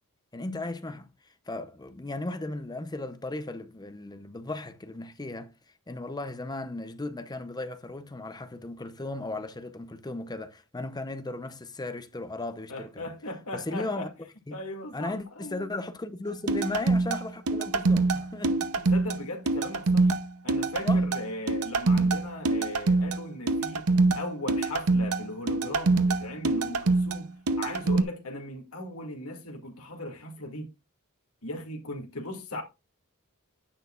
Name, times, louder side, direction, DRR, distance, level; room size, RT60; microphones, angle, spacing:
voice 1, 0.3-1.1 1.5-5.5 5.9-13.0 13.5-14.1 14.5-14.6 14.9-18.9 20.8-21.0, left 2 dB, 20° left, 0.7 m, -36 dB
voice 2, 12.7-14.1 14.5-15.7 18.9-20.1 20.4-27.3 27.6-30.7 31.4-32.6, left 1 dB, 75° left, 2.2 m, -38 dB
sound 1, 16.5-28.0, right 3 dB, 90° right, 0.8 m, -25 dB
10.0 x 6.6 x 2.4 m
head